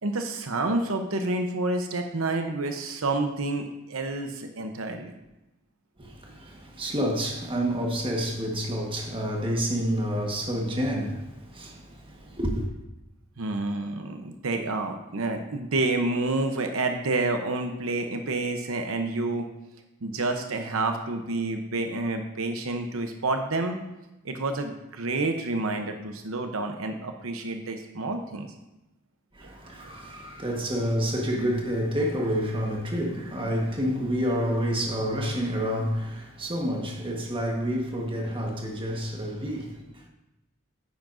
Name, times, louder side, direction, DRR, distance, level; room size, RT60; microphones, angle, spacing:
voice 1, 0.0-5.1 13.4-19.5 20.0-23.8 24.2-28.5 29.4-29.5, right 2 dB, 85° right, 0.9 m, -29 dB
voice 2, 6.0-12.6 29.3-39.9, equal, 25° right, 1.4 m, -29 dB
9.7 x 9.2 x 2.6 m
head